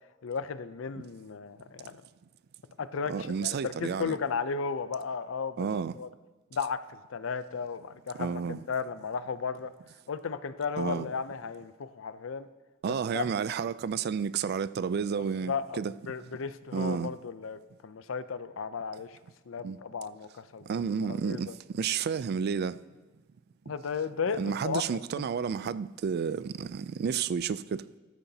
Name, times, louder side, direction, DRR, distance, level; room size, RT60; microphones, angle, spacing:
voice 1, 0.2-2.0 2.8-6.1 6.5-9.7 10.1-12.5 12.8-13.2 15.5-15.8 16.1-19.2 19.5-20.8 21.1-21.5 23.7-24.8, left 5 dB, 90° left, 0.5 m, -35 dB
voice 2, 3.1-4.2 5.6-5.9 8.2-8.6 10.8-11.1 12.8-15.9 16.7-17.1 19.6-19.8 20.7-22.8 24.4-27.9, right 6 dB, 55° right, 0.3 m, -31 dB
14.0 x 13.5 x 2.8 m
head